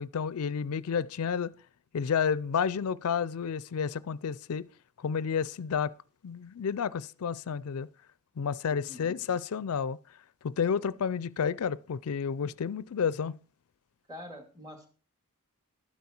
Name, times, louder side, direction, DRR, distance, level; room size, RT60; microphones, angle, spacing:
voice 1, 0.0-1.5 1.9-4.7 5.0-5.9 6.2-7.9 8.4-10.0 10.4-13.4, left 6 dB, 75° left, 0.4 m, -30 dB
voice 2, 8.6-9.2 14.1-14.9, left 1 dB, 15° right, 2.4 m, -46 dB
12.5 x 9.4 x 4.4 m
head